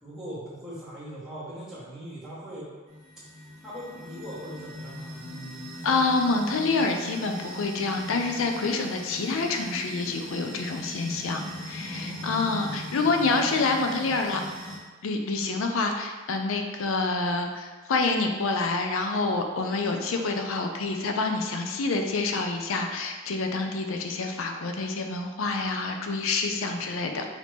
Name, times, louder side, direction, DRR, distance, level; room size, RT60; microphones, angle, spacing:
voice 1, 0.0-2.7 3.3-5.7 11.8-12.8, equal, ahead, -12 dB, 1.3 m, -40 dB
sound 1, 2.9-14.8, left 1 dB, 35° right, 1.4 m, -40 dB
voice 2, 5.8-14.4 15.0-27.3, left 3 dB, 70° left, 4 dB, 0.5 m, -27 dB
5.0 x 2.8 x 3.2 m, 1.3 s
head